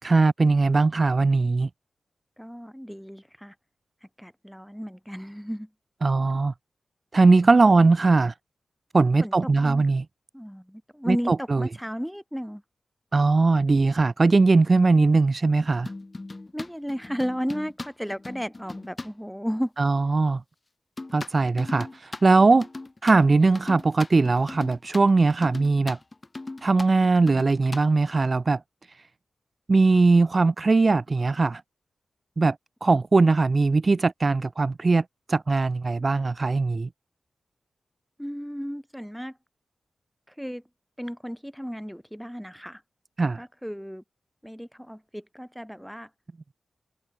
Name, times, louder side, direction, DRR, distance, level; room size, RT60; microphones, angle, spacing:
voice 1, 0.0-1.7 6.0-6.5 7.1-8.3 8.9-10.0 11.1-11.7 13.1-15.9 19.8-20.4 21.1-22.7 23.0-26.0 26.6-28.6 29.7-31.6 32.4-32.6 32.8-36.9 43.2-43.5, right 3 dB, 40° right, 0.6 m, -20 dB
voice 2, 2.4-3.5 4.2-5.7 7.7-7.9 9.2-9.9 10.3-12.6 16.5-19.7 38.2-39.4 40.3-40.6 41.0-42.8 43.4-44.0 44.4-46.1, equal, ahead, 2.6 m, -34 dB
sound 1, 15.7-19.1 21.0-27.8, left 2 dB, 30° left, 1.9 m, -38 dB
wide cardioid pair, 95°, 0 cm